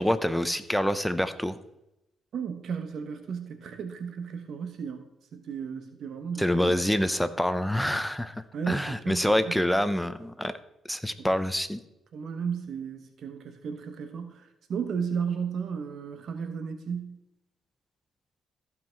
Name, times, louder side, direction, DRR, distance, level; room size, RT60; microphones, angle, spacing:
voice 1, 0.0-1.6 6.4-8.4 8.7-10.5 10.9-11.8, left 1 dB, 5° left, 12 dB, 0.7 m, -26 dB
voice 2, 2.3-6.9 8.5-9.6 11.2-11.3 12.1-17.2, right 6 dB, 65° right, 7 dB, 1.1 m, -34 dB
14.5 x 5.7 x 4.6 m, 0.88 s
cardioid pair, 90°, 0 cm